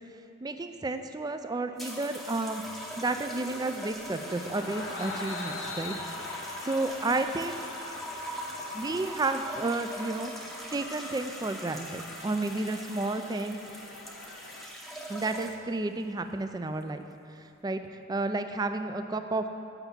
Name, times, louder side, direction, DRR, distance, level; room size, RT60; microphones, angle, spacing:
voice 1, 0.4-2.6 3.0-6.0 6.3-7.6 8.7-13.6 15.1-17.0 17.3-17.8 18.1-19.5, right 2 dB, 20° right, 8 dB, 0.3 m, -32 dB
sound 1, 1.8-15.8 16.7-17.0, equal, ahead, 0.7 m, -41 dB
sound 2, 4.1-14.6, left 3 dB, 60° left, 0.9 m, -43 dB
7.9 x 5.8 x 7.2 m, 2.8 s
head